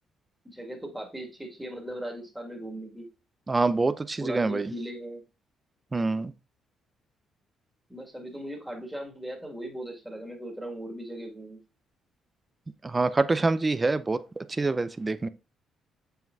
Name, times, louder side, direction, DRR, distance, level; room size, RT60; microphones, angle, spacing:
voice 1, 0.4-3.1 3.6-3.7 4.2-5.2 7.9-11.6, right 1 dB, 5° right, 2.1 m, -38 dB
voice 2, 3.5-4.7 5.9-6.3 12.8-15.3, right 3 dB, 25° right, 0.5 m, -26 dB
7.2 x 5.7 x 2.7 m
cardioid pair, 90°, 0 cm